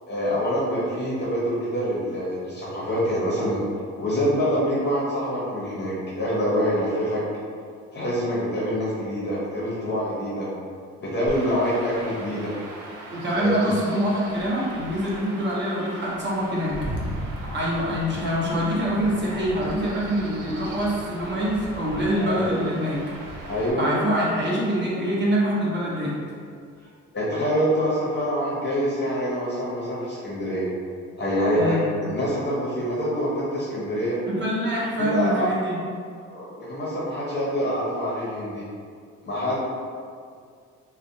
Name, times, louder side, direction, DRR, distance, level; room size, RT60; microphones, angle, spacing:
voice 1, 0.1-3.6 4.0-7.2 7.9-10.5 11.0-12.5 13.4-13.7 22.2-22.7 23.4-23.9 27.1-30.7 31.2-34.2 35.0-35.5 36.3-38.6 39.2-39.6, equal, 35° left, -7 dB, 0.6 m, -25 dB
Chirp tweet / Wind / Stream, 11.3-23.7, right 1 dB, 85° right, 0.5 m, -38 dB
voice 2, 13.1-16.9 17.4-23.0 23.8-26.2 31.5-31.8 34.3-35.8, equal, 35° right, -5 dB, 0.8 m, -25 dB
2.4 x 2.1 x 2.6 m, 2.1 s
cardioid pair, 90°, 30 cm